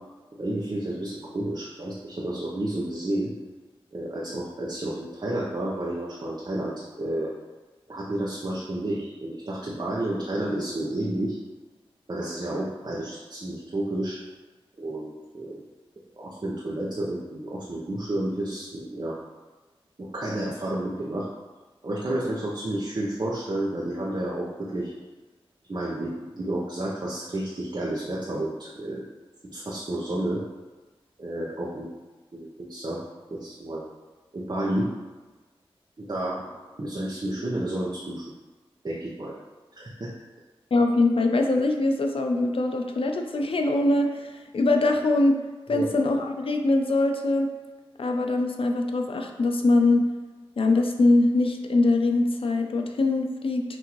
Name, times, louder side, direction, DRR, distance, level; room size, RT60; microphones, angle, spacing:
voice 1, 0.4-3.3 3.9-7.3 7.9-11.4 12.1-14.2 14.8-15.6 16.1-19.2 20.0-21.3 21.8-24.9 25.7-29.0 29.5-30.4 31.2-31.9 32.3-33.0 33.3-33.8 34.3-34.9 36.0-36.4 36.8-38.2 38.8-39.3 39.7-40.1 45.7-45.9, right 1 dB, 50° right, -5 dB, 0.8 m, -31 dB
voice 2, 40.7-45.3 45.7-47.5 48.0-50.0 50.6-53.6, left 2 dB, 65° left, 4 dB, 0.5 m, -22 dB
6.0 x 2.7 x 3.1 m, 1.2 s
cardioid pair, 40°, 10 cm